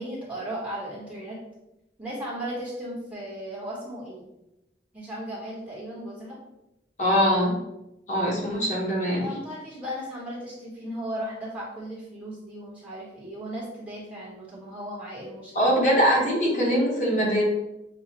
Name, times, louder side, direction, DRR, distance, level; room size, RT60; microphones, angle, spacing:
voice 1, 0.0-1.4 2.0-4.3 4.9-6.4 9.2-15.8, equal, 10° right, -7 dB, 1.3 m, -36 dB
voice 2, 7.0-7.5 8.1-9.3 15.5-17.4, equal, 45° left, -4 dB, 1.1 m, -22 dB
6.5 x 2.4 x 2.8 m, 0.91 s
head